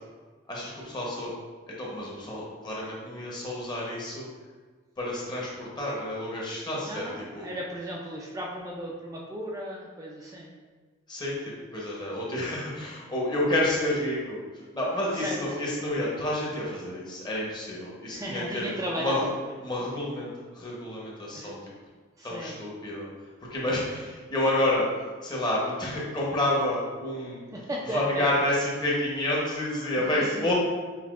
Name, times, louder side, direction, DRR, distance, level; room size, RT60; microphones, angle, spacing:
voice 1, 0.5-1.3 1.7-4.3 5.0-7.5 11.1-18.7 18.9-19.3 19.6-21.6 22.2-24.9 25.2-27.4 27.8-30.5, left 1 dB, 25° left, -4 dB, 0.9 m, -29 dB
voice 2, 6.8-10.5 15.1-15.4 18.1-19.6 21.3-21.6 22.2-22.6 27.5-28.3 30.1-30.5, equal, 15° right, -4 dB, 0.4 m, -35 dB
5.6 x 2.7 x 2.4 m, 1.4 s
head